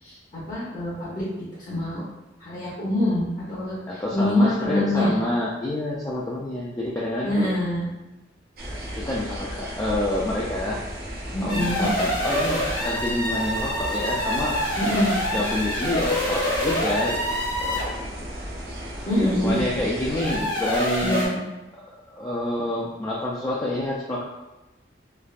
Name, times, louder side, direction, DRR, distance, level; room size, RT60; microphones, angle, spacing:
voice 1, 0.0-2.0 2.4-5.1 7.2-7.9 11.3-11.9 14.8-15.2 19.1-19.6 21.0-21.4, left 1 dB, 45° left, -9 dB, 0.7 m, -25 dB
voice 2, 3.9-7.3 8.7-10.9 11.4-14.9 15.3-17.2 17.6-18.0 18.3-18.4 19.1-21.3 22.1-24.2, left 1 dB, 20° left, -5 dB, 0.3 m, -28 dB
sound 1, 8.6-20.4, equal, 50° right, 0.5 m, -35 dB
sound 2, 11.5-18.0 20.0-21.3, equal, 75° left, 1.0 m, -26 dB
3.2 x 2.4 x 2.4 m, 1.0 s
head